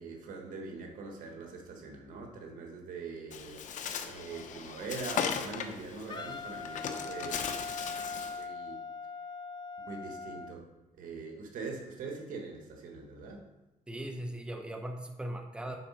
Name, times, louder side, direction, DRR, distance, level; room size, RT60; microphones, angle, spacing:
voice 1, 0.0-3.7 4.1-7.4 7.8-8.0 8.4-8.8 9.9-10.7 11.0-13.4, right 4 dB, 80° right, 2 dB, 1.5 m, -43 dB
Bird, 3.3-8.4, left 7 dB, 70° left, 0.7 m, -38 dB
Wind instrument woodwind instrument, 6.1-10.5, left 4 dB, 35° left, 0.5 m, -41 dB
voice 2, 13.9-15.8, right 1 dB, 5° right, 4 dB, 0.9 m, -39 dB
8.9 x 4.1 x 5.5 m, 1.0 s
cardioid pair, 110°, 14 cm